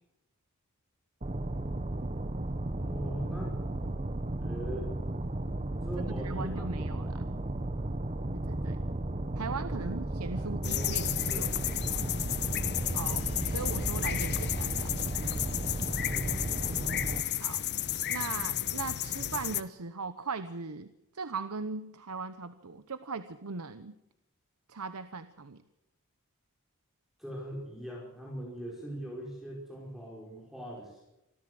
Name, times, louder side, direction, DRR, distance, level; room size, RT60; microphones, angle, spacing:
sound 1, 1.2-17.2, right 1 dB, 30° right, 1.0 m, -34 dB
voice 1, 2.6-3.6 4.4-4.9 5.8-7.2 9.8-10.0 10.3-12.1 15.7-16.8 27.2-31.0, right 1 dB, ahead, -3 dB, 5.0 m, -42 dB
voice 2, 6.1-7.2 8.3-8.8 9.4-11.5 12.9-14.9 17.4-17.6 18.1-24.0 24.7-25.6, right 4 dB, 85° right, 11 dB, 0.9 m, -39 dB
sound 2, 10.6-19.6, left 12 dB, 50° left, 0.9 m, -33 dB
sound 3, 11.7-15.9, left 1 dB, 30° left, 5.1 m, -42 dB
26.0 x 14.5 x 7.9 m, 0.90 s
head